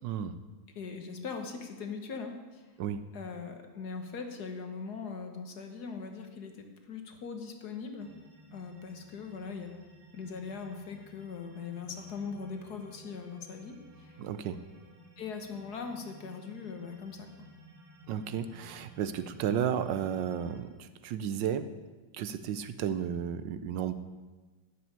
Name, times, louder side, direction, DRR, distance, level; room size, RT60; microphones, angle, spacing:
voice 1, 0.8-2.7 3.1-8.1 8.5-9.8 10.1-14.2 15.2-17.3, left 5 dB, 60° left, 5 dB, 1.7 m, -40 dB
sound 1, 8.0-20.6, equal, 40° right, 2.3 m, -55 dB
voice 2, 14.2-14.6 18.1-21.7 22.1-23.9, right 9 dB, 75° right, 11 dB, 1.3 m, -33 dB
12.5 x 6.6 x 9.6 m, 1.3 s
omnidirectional pair, 2.0 m